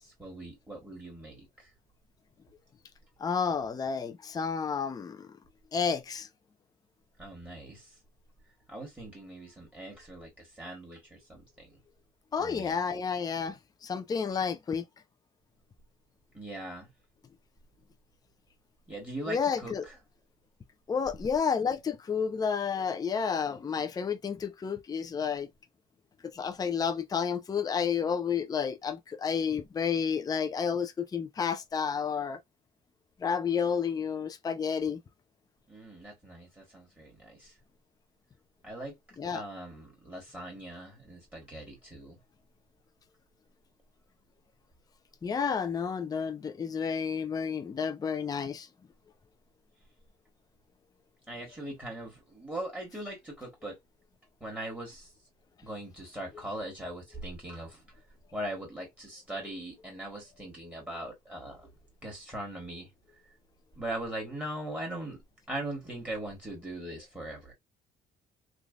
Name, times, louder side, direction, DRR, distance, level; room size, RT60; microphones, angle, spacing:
voice 1, 0.2-1.5 7.2-7.8 8.7-10.3 10.6-11.7 12.4-12.8 16.3-16.9 18.9-20.0 35.7-37.5 38.6-38.9 39.3-42.2 51.3-53.8 54.4-55.1 55.6-57.8 58.3-61.6 62.0-62.9 63.8-65.2 65.5-67.5, right 1 dB, 10° right, 1.7 m, -40 dB
voice 2, 3.2-5.2 5.7-6.3 12.3-13.5 13.8-14.8 19.3-19.9 20.9-25.5 26.3-32.4 33.2-35.0 39.2-39.4 45.2-48.7, left 6 dB, 20° left, 0.5 m, -30 dB
3.2 x 2.4 x 2.4 m
cardioid pair, 110°, 17 cm